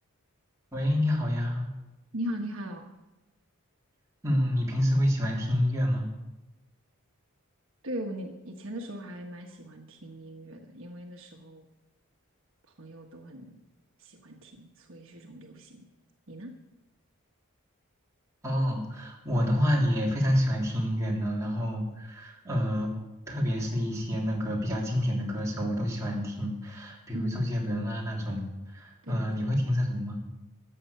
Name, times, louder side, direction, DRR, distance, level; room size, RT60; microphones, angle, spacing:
voice 1, 0.7-1.7 4.2-6.1 18.4-22.9 23.3-30.2, equal, 15° right, -4 dB, 3.4 m, -28 dB
voice 2, 2.1-2.8 7.8-11.7 12.8-13.6 14.0-15.9 16.3-16.5 27.1-27.5 29.0-29.5, equal, 65° right, 2 dB, 1.4 m, -39 dB
14.5 x 8.9 x 6.8 m, 1.0 s
head